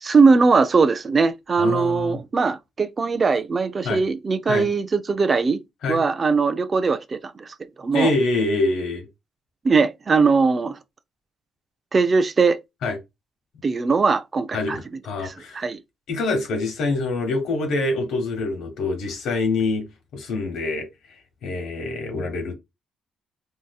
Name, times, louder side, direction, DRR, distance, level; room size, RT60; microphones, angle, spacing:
voice 1, 0.0-5.6 5.9-8.1 9.6-10.8 11.9-12.6 13.6-14.8 15.2-15.8, right 4 dB, 35° right, 0.4 m, -20 dB
voice 2, 1.6-2.2 3.8-4.0 4.5-4.7 5.8-6.0 7.9-9.1 12.8-13.0 14.5-15.6 16.1-19.8 20.1-20.9 21.4-22.5, left 3 dB, 80° left, 1.2 m, -25 dB
3.7 x 2.7 x 2.2 m
cardioid pair, 90°, 0 cm